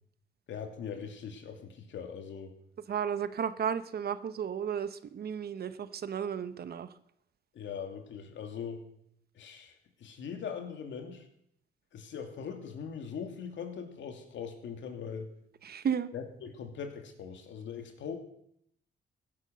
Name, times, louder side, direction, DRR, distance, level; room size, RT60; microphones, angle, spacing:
voice 1, 0.5-2.6 7.5-8.8 9.3-11.3 11.9-15.3 16.1-18.2, left 7 dB, 70° left, 5 dB, 2.6 m, -41 dB
voice 2, 2.9-6.9 15.6-16.1, right 8 dB, 50° right, 13 dB, 1.0 m, -33 dB
16.0 x 10.0 x 6.4 m, 0.73 s
cardioid pair, 90°, 20 cm